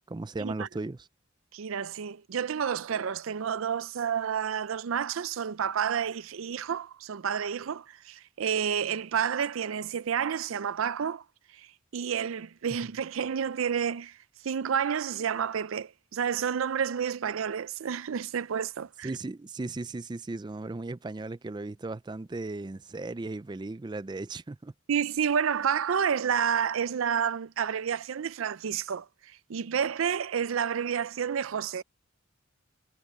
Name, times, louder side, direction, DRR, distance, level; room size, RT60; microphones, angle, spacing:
voice 1, 0.1-1.1 19.0-24.7, right 2 dB, 20° right, 0.4 m, -36 dB
voice 2, 1.5-11.2 11.5-11.7 11.9-14.2 14.4-19.1 24.9-31.8, right 7 dB, 85° right, 0.5 m, -30 dB
head